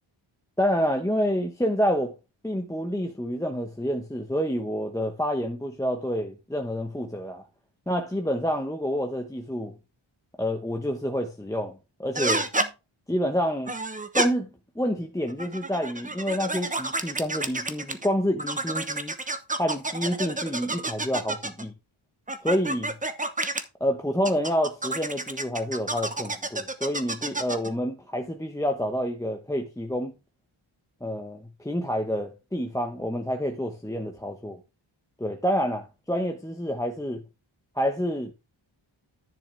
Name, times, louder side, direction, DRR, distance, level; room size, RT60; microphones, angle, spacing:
voice 1, 0.6-2.1 2.4-7.4 7.9-9.7 10.4-12.5 13.1-13.7 14.1-14.5 14.7-19.1 19.6-21.7 22.4-22.9 23.8-30.1 31.0-34.6 35.2-37.2 37.8-38.3, equal, 5° left, 0.9 m, -28 dB
sound 1, 12.1-12.7 13.7-14.3 15.3-18.1 18.4-21.7 22.3-23.6 24.2-27.7, right 2 dB, 15° right, 1.0 m, -29 dB
10.5 x 6.3 x 3.3 m
wide cardioid pair, 140°, 48 cm